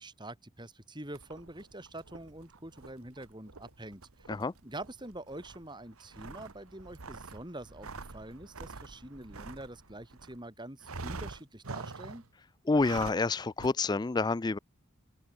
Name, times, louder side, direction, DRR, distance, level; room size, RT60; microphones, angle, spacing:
voice 1, 0.0-4.3 4.6-12.2, right 1 dB, 20° right, 3.4 m, -45 dB
sound 1, 1.1-10.4 10.8-12.3 12.7-13.3 13.6-13.7, right 3 dB, 75° right, 1.3 m, -46 dB
voice 2, 12.7-14.6, left 3 dB, 20° left, 0.3 m, -28 dB
open air
head